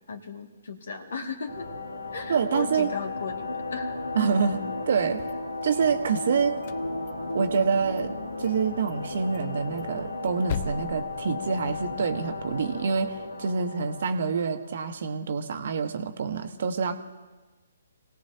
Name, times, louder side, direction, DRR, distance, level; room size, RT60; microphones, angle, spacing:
voice 1, 0.1-1.7 2.1-3.9, left 4 dB, 65° left, 4 dB, 2.2 m, -36 dB
sound 1, 1.5-15.0, left 2 dB, 85° left, 1.6 m, -35 dB
voice 2, 2.3-2.9 4.1-4.6 4.9-5.2 5.6-6.6 7.3-8.1 8.4-17.0, right 6 dB, 55° right, 7 dB, 1.3 m, -26 dB
sound 2, 5.0-6.2 6.6-7.7 8.0-8.1 8.4-8.6 8.9-9.0 9.3-11.9, left 6 dB, 40° left, 0.8 m, -38 dB
27.5 x 18.0 x 2.9 m, 1.2 s
figure-of-eight pair, 130°, 0 cm